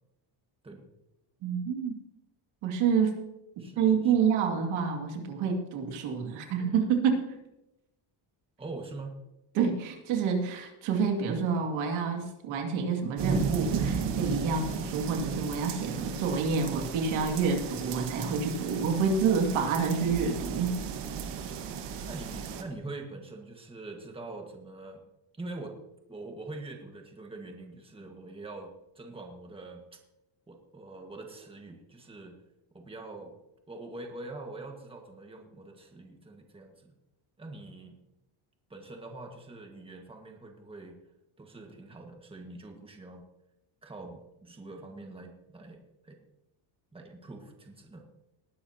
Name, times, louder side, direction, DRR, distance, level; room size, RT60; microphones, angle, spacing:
voice 1, 1.4-2.0 2.6-3.2 3.6-7.3 9.5-20.8, right 6 dB, 85° right, 3 dB, 2.4 m, -28 dB
voice 2, 3.6-4.2 8.6-9.2 22.0-25.0 25.4-25.7 26.1-28.7 28.9-29.8 30.5-32.4 32.7-33.3 33.7-36.9 37.4-38.0 38.7-41.0 41.4-43.2 43.8-46.2 46.9-48.0, right 2 dB, 10° right, 3 dB, 1.6 m, -44 dB
sound 1, 13.2-22.6, right 6 dB, 60° right, 1.7 m, -35 dB
19.5 x 11.5 x 2.9 m, 0.91 s
cardioid pair, 145°, 47 cm